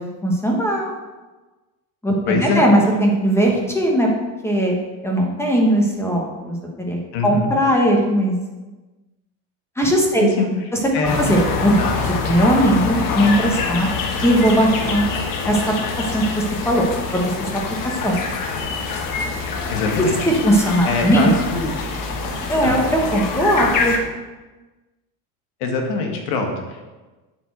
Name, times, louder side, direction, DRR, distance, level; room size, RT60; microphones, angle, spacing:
voice 1, 0.2-0.9 2.0-4.1 4.4-4.8 5.0-8.4 9.8-10.3 11.2-13.9 14.2-15.1 15.4-16.9 17.1-17.5 18.0-18.2 20.3-21.3 22.5-24.0, right 1 dB, 5° left, -1 dB, 1.3 m, -19 dB
voice 2, 2.3-2.6 7.1-7.5 10.2-10.5 10.9-11.3 11.8-12.0 19.7-20.2 20.8-21.7 22.6-22.8 25.6-26.8, left 4 dB, 70° left, 2 dB, 1.7 m, -23 dB
sound 1, 11.0-24.0, left 4 dB, 45° left, 1.3 m, -25 dB
8.9 x 4.4 x 6.3 m, 1.2 s
cardioid pair, 140°, 44 cm